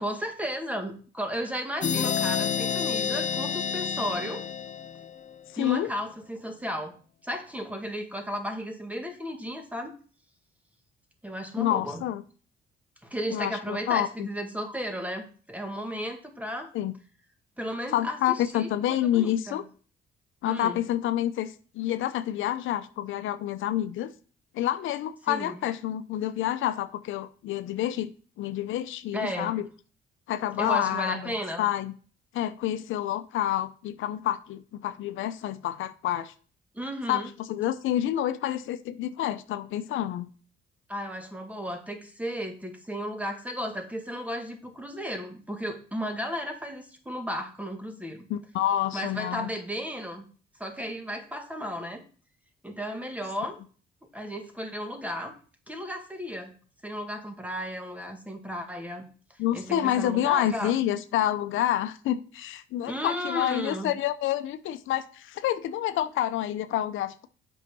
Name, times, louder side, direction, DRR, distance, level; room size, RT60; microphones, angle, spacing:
voice 1, 0.0-4.4 5.6-9.9 11.2-12.0 13.0-16.7 17.6-19.6 20.4-20.8 25.3-25.6 29.1-29.5 30.6-31.7 36.7-37.3 40.9-48.3 48.9-50.3 50.6-52.0 52.6-53.6 54.0-55.4 55.7-56.5 56.8-59.1 59.5-60.7 62.9-63.9, equal, 5° right, 5 dB, 1.8 m, -34 dB
sound 1, 1.8-5.4, left 7 dB, 40° left, 0.5 m, -29 dB
voice 2, 5.5-5.9 11.6-12.2 13.3-14.3 16.7-16.9 17.9-19.6 20.4-24.1 24.5-28.1 28.4-29.7 30.3-31.9 32.3-36.3 37.1-40.3 48.3-49.5 59.4-67.3, left 12 dB, 85° left, 11 dB, 0.6 m, -28 dB
8.2 x 5.5 x 5.4 m, 0.41 s
cardioid pair, 90°, 20 cm